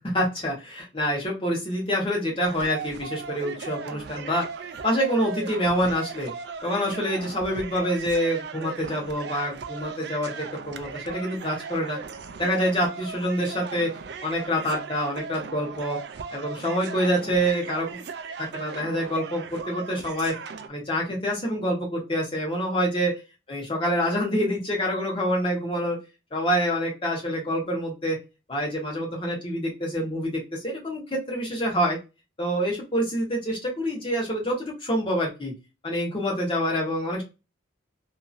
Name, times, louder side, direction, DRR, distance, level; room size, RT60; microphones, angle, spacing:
voice 1, 0.0-4.4 4.8-6.3 6.6-12.0 12.4-13.9 14.2-16.0 16.3-18.0 18.4-20.3 20.7-23.1 23.5-26.0 26.3-28.2 28.5-32.0 32.4-35.5 35.8-37.2, equal, 25° left, -2 dB, 1.1 m, -26 dB
sound 1, 2.4-20.7, right 5 dB, 55° right, 0.3 m, -38 dB
2.8 x 2.6 x 2.4 m, 0.27 s
head